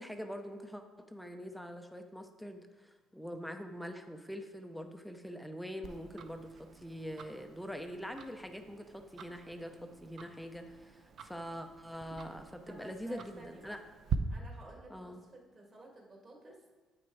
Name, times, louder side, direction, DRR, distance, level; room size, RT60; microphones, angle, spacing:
voice 1, 0.0-13.8 14.9-15.2, equal, ahead, 6 dB, 0.6 m, -44 dB
Tick-tock, 5.8-14.2, right 7 dB, 55° right, 0.6 m, -45 dB
voice 2, 12.7-13.8 14.3-16.6, right 2 dB, 35° right, 0 dB, 2.0 m, -53 dB
8.6 x 6.0 x 4.6 m, 1.3 s
cardioid pair, 115°, 0 cm